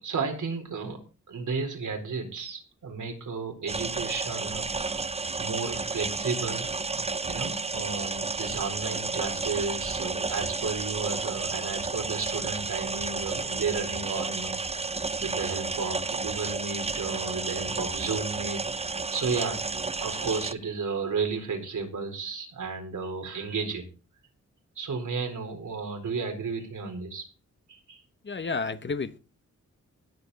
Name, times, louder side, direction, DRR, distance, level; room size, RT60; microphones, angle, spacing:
voice 1, 0.0-1.0 1.3-5.1 5.4-23.8 24.8-27.3 27.7-28.0, right 4 dB, 90° right, 4.2 m, -33 dB
sound 1, 3.7-20.5, right 3 dB, 20° right, 0.6 m, -32 dB
voice 2, 28.2-29.2, left 4 dB, 40° left, 1.1 m, -31 dB
19.5 x 7.9 x 4.1 m
wide cardioid pair, 110°, 30 cm